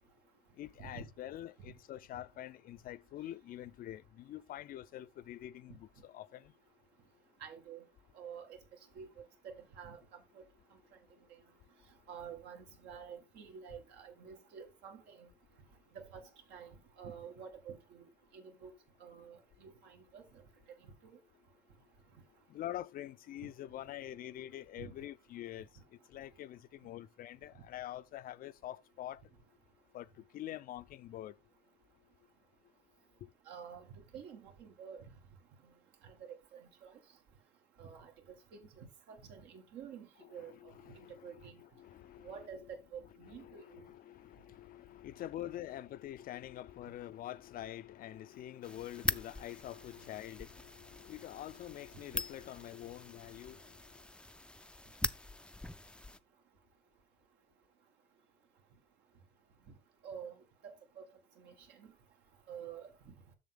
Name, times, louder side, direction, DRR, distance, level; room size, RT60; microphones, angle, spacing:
voice 1, 0.6-6.5 22.5-25.7 26.1-29.2 29.9-30.1 30.3-31.3 40.2-42.5 43.4-53.6, left 13 dB, 60° left, 0.5 m, -46 dB
voice 2, 7.4-7.8 8.2-8.6 9.0-10.4 12.1-15.3 15.9-18.1 18.3-18.7 19.0-20.2 21.0-21.1 24.8-24.9 33.5-35.1 35.6-35.7 36.0-37.0 37.8-38.1 38.5-40.5 41.2-41.6 42.2-43.8 60.0-60.4 61.0-61.1 61.4-61.9 62.5-63.1, right 7 dB, 80° right, 2.0 m, -49 dB
sound 1, 48.6-56.2, left 2 dB, 5° left, 0.4 m, -42 dB
7.2 x 6.6 x 3.7 m
cardioid pair, 110°, 17 cm